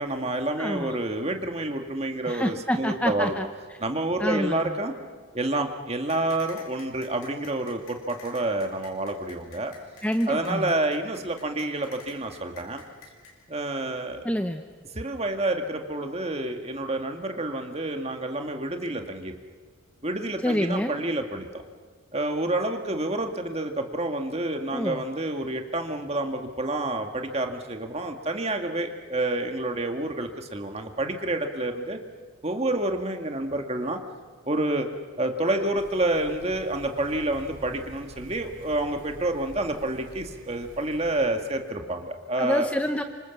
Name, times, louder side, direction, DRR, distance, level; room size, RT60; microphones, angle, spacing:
voice 1, 0.0-3.4 3.8-4.9 5.3-9.7 10.3-12.8 13.5-14.2 14.9-19.4 20.0-21.6 22.1-32.0 32.4-34.0 34.5-34.9 35.2-42.7, right 2 dB, 30° right, 4 dB, 1.9 m, -28 dB
voice 2, 0.6-1.0 2.2-3.5 4.2-4.8 10.0-10.7 14.2-14.6 20.4-21.0 24.7-25.0 42.4-43.0, equal, 5° left, 7 dB, 0.7 m, -27 dB
sound 1, 6.1-13.3, left 5 dB, 85° left, 6.3 m, -48 dB
sound 2, 35.7-41.2, equal, 65° right, 5.3 m, -47 dB
27.0 x 25.5 x 7.3 m, 1.5 s
head